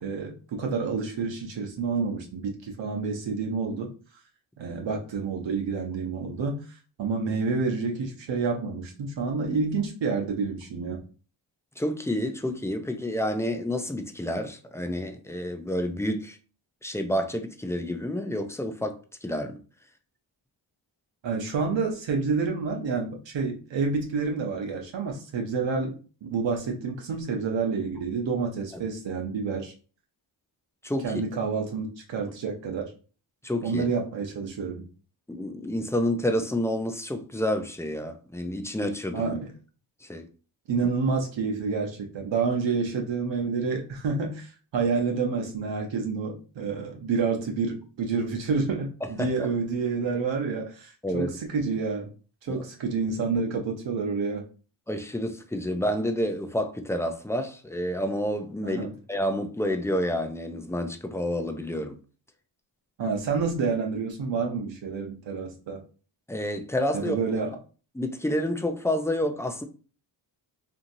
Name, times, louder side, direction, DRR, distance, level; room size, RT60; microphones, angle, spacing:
voice 1, 0.0-3.9 4.6-6.6 7.0-11.0 21.2-29.7 31.0-32.9 33.6-34.9 39.1-39.5 40.7-52.1 52.4-54.4 58.6-58.9 63.0-65.8 66.9-67.5, right 4 dB, 65° right, 0.8 m, -29 dB
voice 2, 11.8-16.4 16.8-19.6 30.8-31.2 33.4-33.9 35.3-39.4 40.0-40.3 49.0-49.3 51.0-51.4 52.5-52.7 54.9-62.0 66.3-67.2 67.9-69.6, left 1 dB, 5° left, 0.4 m, -29 dB
2.8 x 2.6 x 2.6 m
cardioid pair, 65°, 48 cm